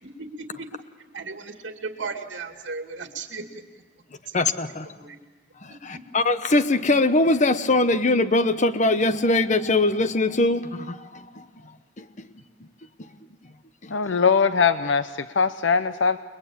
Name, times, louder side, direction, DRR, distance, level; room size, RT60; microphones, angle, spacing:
voice 1, 0.0-0.7 1.1-3.6 4.3-4.4 4.9-5.2 5.9-6.0, right 4 dB, 80° right, 5 dB, 2.4 m, -36 dB
voice 2, 4.3-4.9 5.6-11.4 12.0-12.3 13.8-13.9, left 2 dB, 40° left, 11 dB, 1.0 m, -22 dB
voice 3, 13.9-16.2, left 5 dB, 80° left, 11 dB, 0.8 m, -21 dB
30.0 x 21.5 x 8.8 m, 1.3 s
head